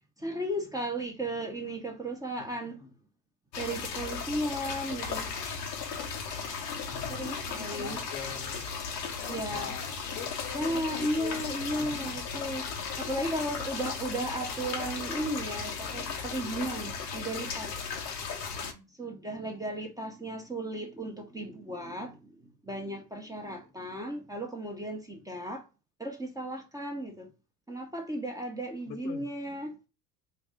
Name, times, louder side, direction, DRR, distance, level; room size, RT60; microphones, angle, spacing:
voice 1, 0.2-2.8 3.6-5.3 7.1-8.0 9.3-9.7 10.5-17.7 19.0-22.4 22.6-25.6 26.0-27.3 27.7-29.7, right 1 dB, 5° right, 0.8 m, -35 dB
sound 1, 3.5-18.7, left 5 dB, 85° left, 1.1 m, -36 dB
voice 2, 7.6-8.7 9.2-11.5 11.8-12.2 18.6-18.9 19.4-19.6 23.6-23.7 28.9-29.7, left 7 dB, 55° left, 1.0 m, -44 dB
4.2 x 2.4 x 3.5 m
hypercardioid pair, 85°, 48 cm